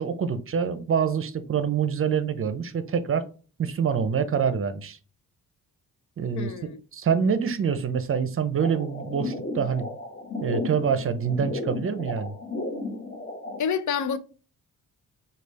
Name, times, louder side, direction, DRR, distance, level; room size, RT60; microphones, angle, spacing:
voice 1, 0.0-3.2 3.6-5.0 6.2-6.5 6.9-9.9 10.4-12.3, right 7 dB, 40° right, 0.6 m, -26 dB
voice 2, 6.3-6.8 13.6-14.2, left 7 dB, 60° left, 0.6 m, -28 dB
sound 1, 8.6-13.6, left 2 dB, 30° left, 1.0 m, -34 dB
4.9 x 2.4 x 3.3 m
cardioid pair, 90°, 34 cm